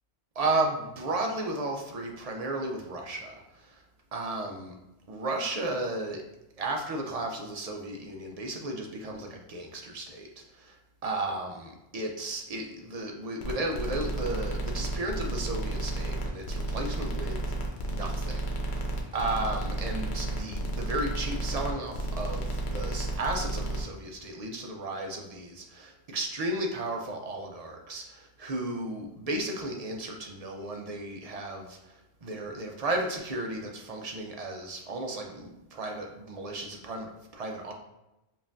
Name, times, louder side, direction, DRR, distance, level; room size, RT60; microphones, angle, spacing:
voice 1, 0.3-3.8 4.1-4.7 5.1-6.2 6.6-18.9 19.1-37.7, right 2 dB, 45° right, 1 dB, 0.5 m, -34 dB
sound 1, 13.4-23.8, right 2 dB, 75° left, 1.0 m, -32 dB
5.3 x 2.5 x 2.6 m, 0.95 s
omnidirectional pair, 1.1 m